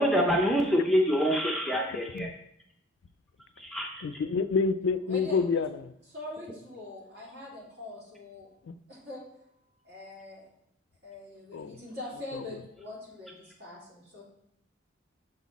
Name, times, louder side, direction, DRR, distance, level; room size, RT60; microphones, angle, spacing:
voice 1, 0.0-2.3 3.6-3.9, equal, ahead, 0 dB, 0.5 m, -25 dB
voice 2, 1.9-2.3 4.0-5.9 8.6-8.8 11.5-11.8 12.3-12.4, left 4 dB, 70° left, 13 dB, 0.3 m, -29 dB
voice 3, 5.1-5.7 6.1-8.5 8.9-9.2 9.8-10.5 11.0-14.2, left 1 dB, 55° right, -5 dB, 2.4 m, -43 dB
6.6 x 4.1 x 4.0 m, 0.77 s
head